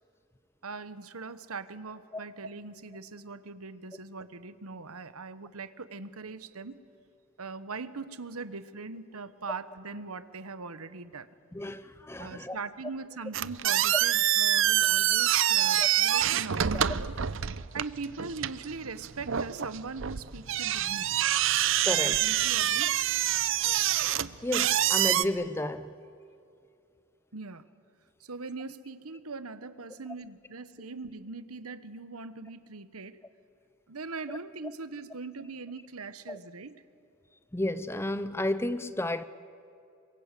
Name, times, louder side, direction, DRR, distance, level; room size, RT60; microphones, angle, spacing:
voice 1, 0.6-6.8 7.4-11.3 12.2-17.1 17.7-21.2 22.2-22.9 27.3-27.7 28.2-33.2 33.9-36.7, right 4 dB, 85° right, 1.2 m, -41 dB
voice 2, 11.5-12.6 15.8-15.9 16.7-16.8 21.8-22.2 24.4-25.9 34.3-34.4 36.3-36.4 37.5-39.2, left 1 dB, 10° left, 0.6 m, -32 dB
sound 1, 13.3-25.2, right 11 dB, 60° right, 0.6 m, -26 dB
27.5 x 23.5 x 8.3 m
head